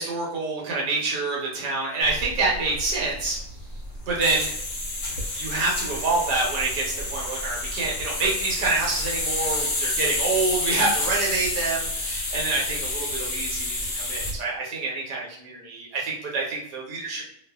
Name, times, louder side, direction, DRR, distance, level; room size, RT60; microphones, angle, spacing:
voice 1, 0.0-3.4 4.1-4.5 5.3-17.2, right 3 dB, 75° right, -3 dB, 1.2 m, -27 dB
sound 1, 2.0-14.4, left 2 dB, 60° left, 1.0 m, -29 dB
2.6 x 2.5 x 2.2 m, 0.70 s
omnidirectional pair, 1.9 m